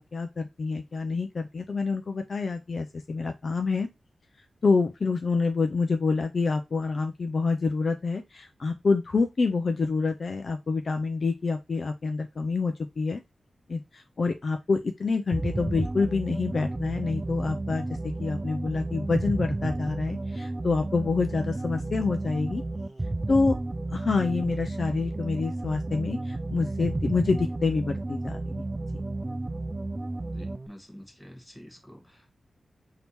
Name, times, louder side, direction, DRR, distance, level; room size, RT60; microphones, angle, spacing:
voice 1, 0.0-3.9 4.6-13.2 13.7-22.6 23.3-23.6 23.9-28.6, left 4 dB, 50° left, 6 dB, 0.5 m, -27 dB
sound 1, 15.3-30.7, right 2 dB, 25° right, 0.3 m, -32 dB
voice 2, 30.3-32.3, equal, 5° left, 2 dB, 1.2 m, -48 dB
3.5 x 2.8 x 4.2 m, 0.22 s
wide cardioid pair, 125°, 0 cm